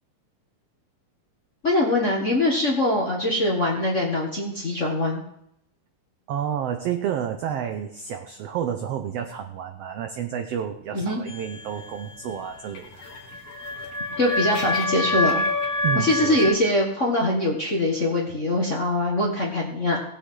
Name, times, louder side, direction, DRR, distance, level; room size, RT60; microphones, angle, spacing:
voice 1, 1.6-5.2 10.9-11.2 14.2-15.4 15.9-20.0, left 1 dB, 35° left, -3 dB, 1.3 m, -23 dB
voice 2, 6.3-13.1 15.8-16.4, right 9 dB, 85° right, 6 dB, 1.3 m, -30 dB
sound 1, 11.3-16.5, left 2 dB, 50° left, 2.3 m, -27 dB
18.5 x 8.2 x 3.8 m, 0.75 s
omnidirectional pair, 3.8 m